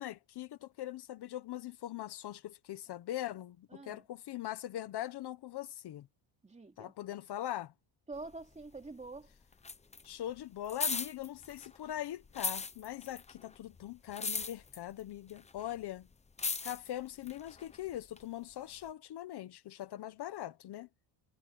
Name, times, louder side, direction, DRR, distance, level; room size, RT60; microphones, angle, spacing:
voice 1, 0.0-6.1 6.8-7.7 10.0-16.1 16.6-20.9, left 13 dB, 55° left, 1.1 m, -41 dB
voice 2, 3.7-4.1 6.4-6.9 8.1-9.3, right 3 dB, 15° right, 2.8 m, -46 dB
sound 1, 8.1-9.2 9.4-11.9 12.2-18.2 18.9-19.0, left 4 dB, 15° left, 0.8 m, -38 dB
cardioid pair, 150°, 47 cm